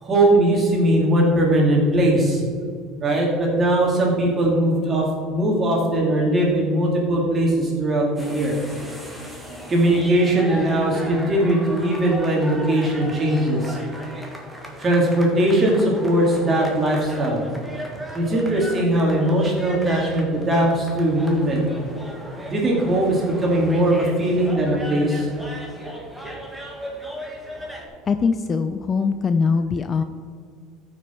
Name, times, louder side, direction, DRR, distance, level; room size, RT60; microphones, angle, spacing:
voice 1, 0.0-2.4 3.0-8.6 9.7-13.8 14.8-17.4 18.1-21.6 22.5-25.3, right 1 dB, 25° right, -2 dB, 2.7 m, -20 dB
sound 1, 8.2-27.9, equal, ahead, 1.7 m, -37 dB
voice 2, 28.1-30.0, left 5 dB, 25° left, 9 dB, 0.4 m, -22 dB
13.5 x 6.4 x 4.5 m, 2.2 s
cardioid pair, 145°, 0 cm